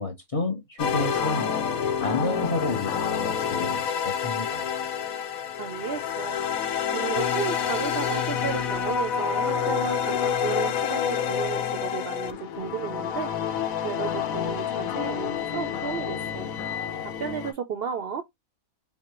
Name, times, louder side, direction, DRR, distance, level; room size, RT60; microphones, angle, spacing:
voice 1, 0.0-1.7 2.0-4.7, left 2 dB, 30° left, 0.7 m, -30 dB
sound 1, 0.8-17.5, left 8 dB, 90° left, 1.1 m, -28 dB
voice 2, 5.6-6.4 6.9-13.3 13.8-16.5 17.0-18.2, right 7 dB, 60° right, 0.6 m, -33 dB
5.4 x 2.1 x 3.0 m
omnidirectional pair, 1.4 m